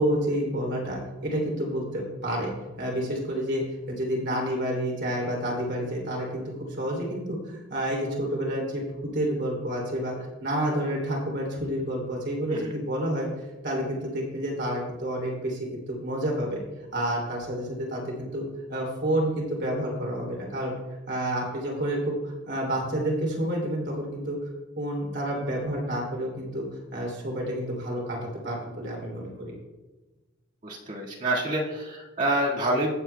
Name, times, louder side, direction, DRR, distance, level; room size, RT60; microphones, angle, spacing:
voice 1, 0.0-2.5 2.8-3.6 3.9-10.1 10.4-13.3 13.6-16.6 16.9-18.4 18.7-20.7 21.1-24.4 24.8-26.6 26.9-28.2 28.4-29.5, right 1 dB, 60° right, -2 dB, 3.0 m, -29 dB
voice 2, 30.6-32.9, right 1 dB, 40° right, -4 dB, 1.9 m, -27 dB
16.5 x 7.6 x 2.2 m, 1.1 s
head